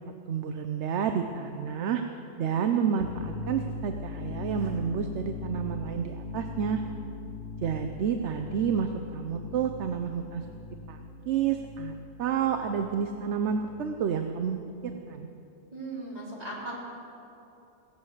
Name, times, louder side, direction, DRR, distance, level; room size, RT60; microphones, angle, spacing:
voice 1, 0.3-2.0 2.4-6.8 7.6-10.4 10.9-11.0 11.3-14.6 15.1-15.3, right 7 dB, 70° right, 6 dB, 1.0 m, -29 dB
sound 1, 3.0-14.4, left 3 dB, 85° left, 1.2 m, -40 dB
voice 2, 15.7-16.7, right 2 dB, 35° right, -6 dB, 3.9 m, -37 dB
17.5 x 7.0 x 8.1 m, 2.8 s
omnidirectional pair, 1.2 m